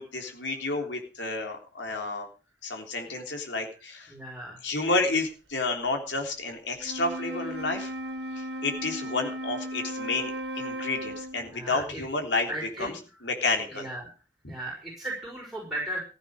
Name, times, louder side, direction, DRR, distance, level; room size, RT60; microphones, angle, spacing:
voice 1, 0.0-2.3 2.6-4.1 4.6-7.9 8.4-12.5 12.8-12.9 13.2-13.9 14.4-14.5, left 3 dB, 75° left, 3 dB, 3.5 m, -30 dB
voice 2, 4.1-4.6 11.5-12.0 12.5-13.0 13.7-14.0 14.5-16.0, right 1 dB, ahead, -4 dB, 5.2 m, -36 dB
Wind instrument woodwind instrument, 6.8-11.6, equal, 70° right, 1.8 m, -36 dB
15.5 x 9.1 x 6.4 m, 0.35 s
head